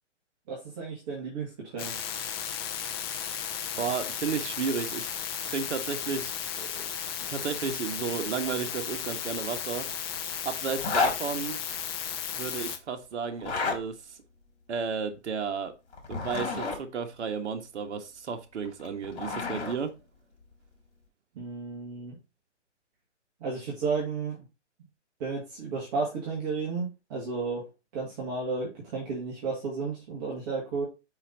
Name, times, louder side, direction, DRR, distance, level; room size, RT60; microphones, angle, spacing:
voice 1, 0.5-2.0 21.3-22.1 23.4-24.5 25.2-27.7 27.9-30.8, right 4 dB, 35° right, 2.5 m, -33 dB
sound 1, 1.8-12.8, left 8 dB, 20° left, 0.7 m, -35 dB
voice 2, 3.8-5.1 5.4-6.9 7.3-9.9 10.4-11.6 12.3-14.2 14.7-15.7 16.1-19.9, right 6 dB, 70° right, 1.7 m, -33 dB
Zipper (clothing), 10.8-11.2 13.3-13.8 15.9-16.8 18.7-19.8, left 5 dB, 55° left, 3.7 m, -30 dB
5.9 x 5.7 x 4.0 m
hypercardioid pair, 160°, 36 cm